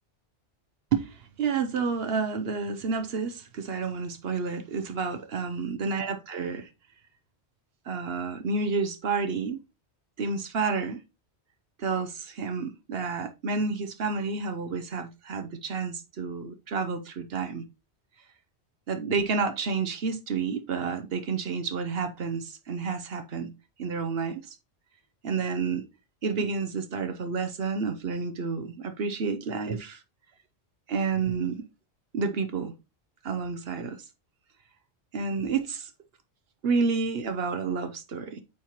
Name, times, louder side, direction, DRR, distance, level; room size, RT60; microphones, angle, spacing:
voice 1, 0.9-6.7 7.9-9.6 10.2-11.0 11.8-17.6 18.9-23.5 23.8-24.6 25.2-25.8 26.2-30.0 30.9-31.6 32.1-32.8 33.2-34.0 35.1-35.9 36.6-38.4, right 5 dB, 65° right, 0.9 m, -30 dB
8.4 x 4.4 x 2.9 m
omnidirectional pair, 1.1 m